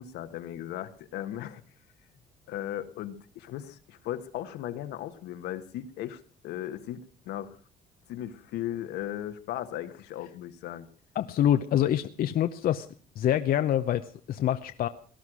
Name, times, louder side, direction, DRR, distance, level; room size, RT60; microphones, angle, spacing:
voice 1, 0.0-1.6 2.5-7.6 8.1-10.9, left 12 dB, 85° left, 8 dB, 1.5 m, -37 dB
voice 2, 11.2-12.9 13.2-14.9, left 11 dB, 60° left, 8 dB, 0.8 m, -26 dB
18.0 x 11.5 x 6.3 m, 0.43 s
cardioid pair, 110°, 17 cm